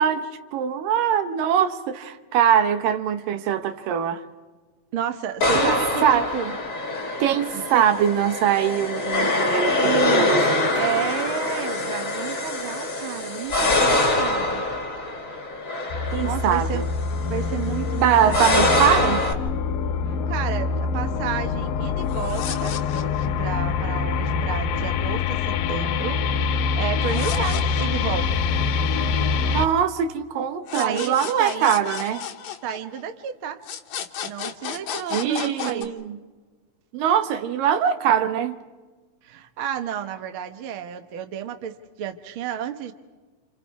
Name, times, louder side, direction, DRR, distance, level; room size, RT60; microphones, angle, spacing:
voice 1, 0.0-4.2 5.6-5.7 6.0-6.4 7.2-10.7 16.1-16.9 18.0-19.2 29.5-32.3 35.1-36.2 36.9-38.6, right 9 dB, 75° right, 2.7 m, -22 dB
voice 2, 4.9-6.6 7.5-7.8 9.8-10.4 10.7-14.6 16.0-16.9 17.3-18.7 20.1-28.4 30.8-31.7 32.6-33.6 34.2-35.9 39.2-42.9, right 9 dB, 55° right, 1.5 m, -31 dB
sound 1, 5.4-19.3, left 2 dB, 30° left, 1.9 m, -24 dB
sound 2, 15.9-29.7, left 5 dB, 80° left, 2.7 m, -25 dB
sound 3, 22.0-23.5 26.9-28.5 30.7-33.2 33.6-35.9, left 8 dB, 60° left, 2.1 m, -34 dB
29.0 x 28.5 x 4.8 m
omnidirectional pair, 4.1 m